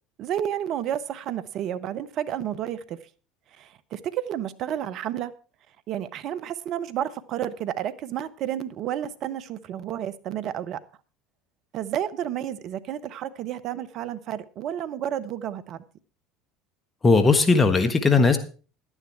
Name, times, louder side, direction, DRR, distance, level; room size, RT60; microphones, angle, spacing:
voice 1, 0.2-3.0 3.6-5.3 5.9-10.8 11.7-15.8, right 10 dB, 55° right, 13 dB, 0.9 m, -31 dB
voice 2, 17.0-18.4, left 4 dB, 25° left, 9 dB, 1.5 m, -18 dB
11.5 x 10.0 x 4.6 m, 0.36 s
hypercardioid pair, 70°, 0 cm